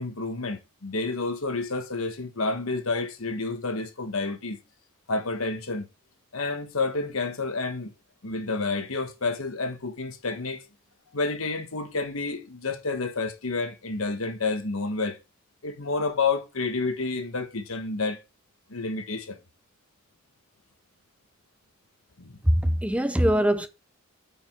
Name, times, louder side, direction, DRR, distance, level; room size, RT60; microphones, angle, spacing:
voice 1, 0.0-4.6 5.1-5.9 6.3-7.9 8.2-10.6 11.1-15.2 15.6-18.2 18.7-19.4 22.2-22.8, left 3 dB, 80° left, 1.3 m, -29 dB
voice 2, 22.4-23.7, equal, 5° right, 0.6 m, -22 dB
8.9 x 5.3 x 3.6 m
head